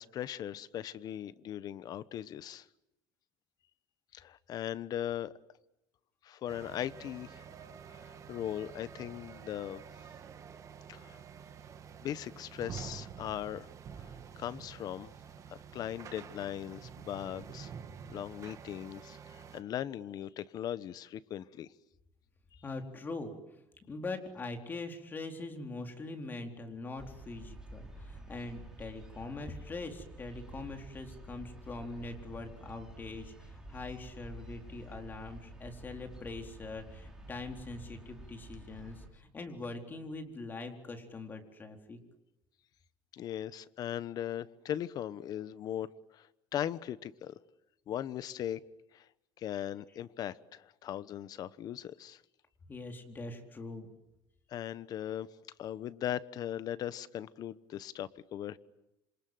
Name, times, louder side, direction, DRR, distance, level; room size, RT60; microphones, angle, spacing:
voice 1, 0.0-2.6 4.1-5.3 6.2-7.4 7.9-9.8 10.9-11.2 12.0-13.7 14.0-14.1 14.4-15.1 15.7-17.7 18.1-21.7 43.1-45.9 46.1-46.3 46.5-47.3 47.9-48.6 48.9-49.0 49.4-52.2 54.5-55.3 55.6-58.6, left 11 dB, 50° left, 15 dB, 1.2 m, -39 dB
sound 1, 6.5-19.6, right 7 dB, 35° right, 2.1 m, -48 dB
voice 2, 22.6-23.3 23.9-42.0 52.7-53.9, left 3 dB, 20° left, 4 dB, 4.1 m, -42 dB
sound 2, 27.0-39.1, right 2 dB, 5° right, 6.4 m, -49 dB
27.5 x 26.5 x 7.9 m, 0.92 s
cardioid pair, 155°, 9 cm